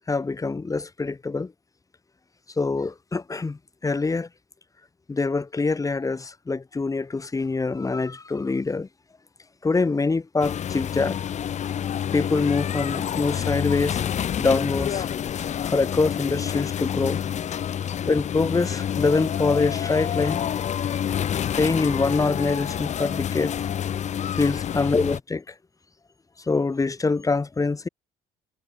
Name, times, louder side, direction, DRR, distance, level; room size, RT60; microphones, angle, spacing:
voice 1, 0.1-1.5 2.6-4.3 5.1-8.9 9.6-11.2 12.1-14.0 14.4-15.1 15.6-17.2 18.1-20.4 21.5-23.5 24.3-25.5 26.5-27.9, left 3 dB, 20° left, 3.1 m, -24 dB
sound 1, 10.4-25.2, left 9 dB, 45° left, 0.9 m, -28 dB
cardioid pair, 110°, 17 cm